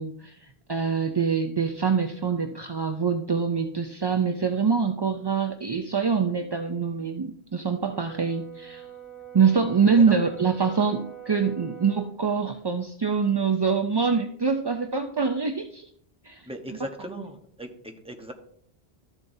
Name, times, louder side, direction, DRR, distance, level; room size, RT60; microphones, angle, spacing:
voice 1, 0.0-8.8 9.3-15.9 16.2-16.5, right 5 dB, 40° right, 5 dB, 0.4 m, -25 dB
Brass instrument, 7.9-12.1, right 9 dB, 80° left, 1.8 m, -44 dB
voice 2, 16.4-18.3, equal, 5° right, 3 dB, 0.9 m, -38 dB
13.0 x 7.1 x 2.7 m, 0.66 s
omnidirectional pair, 1.1 m